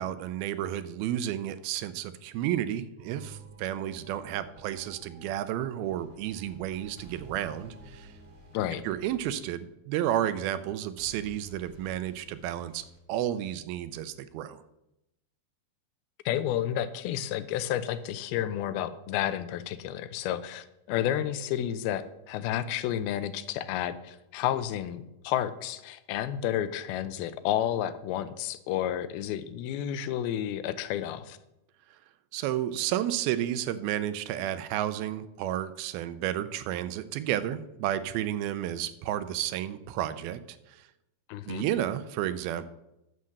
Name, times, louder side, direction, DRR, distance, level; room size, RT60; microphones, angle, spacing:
voice 1, 0.0-8.1 8.8-14.6 32.3-40.9 41.5-42.7, right 11 dB, 85° right, 13 dB, 2.5 m, -32 dB
sound 1, 3.0-9.4, right 3 dB, 25° right, 1.8 m, -52 dB
sound 2, 5.7-9.8 11.0-13.8, right 2 dB, 65° right, 0.4 m, -54 dB
voice 2, 16.3-31.4 41.3-41.7, left 11 dB, 85° left, 13 dB, 2.5 m, -31 dB
9.5 x 7.5 x 6.5 m, 0.88 s
omnidirectional pair, 4.4 m